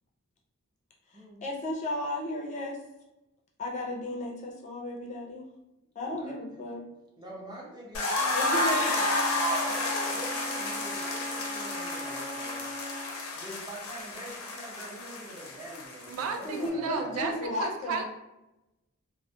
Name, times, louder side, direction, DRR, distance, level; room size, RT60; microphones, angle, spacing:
voice 1, 1.1-2.8 3.6-5.4 6.0-6.8 8.3-8.9 16.4-18.0, left 1 dB, 35° left, -1 dB, 0.4 m, -34 dB
voice 2, 6.1-6.6 7.2-12.7 13.3-17.2, right 1 dB, 20° right, -4 dB, 0.6 m, -45 dB
sound 1, 7.9-16.7, left 2 dB, 85° left, 0.5 m, -31 dB
Bowed string instrument, 8.3-13.2, right 1 dB, 55° right, 0.7 m, -40 dB
voice 3, 16.1-18.0, right 5 dB, 85° right, 4 dB, 0.3 m, -34 dB
2.3 x 2.0 x 2.6 m, 0.93 s
head